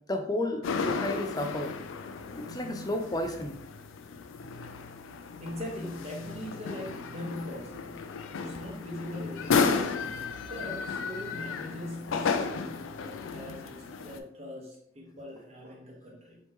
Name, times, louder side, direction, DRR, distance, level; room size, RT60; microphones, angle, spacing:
voice 1, 0.1-1.8 2.4-3.6, left 1 dB, 20° left, 4 dB, 0.4 m, -32 dB
sound 1, 0.6-14.2, left 5 dB, 85° left, 0.4 m, -33 dB
voice 2, 5.4-8.0 8.4-9.7 10.5-16.4, left 1 dB, 35° right, -2 dB, 1.0 m, -41 dB
4.3 x 3.1 x 3.5 m, 0.74 s
head